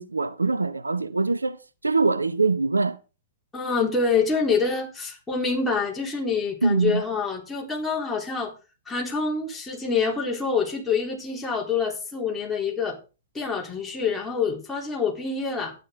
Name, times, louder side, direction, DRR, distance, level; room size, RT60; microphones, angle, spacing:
voice 1, 0.0-3.0 6.6-7.0, right 3 dB, 85° right, 0.8 m, -23 dB
voice 2, 3.5-8.5 8.9-13.0 13.3-15.7, left 5 dB, 10° left, 3.8 m, -26 dB
11.5 x 10.0 x 3.9 m
figure-of-eight pair, 105°, 0 cm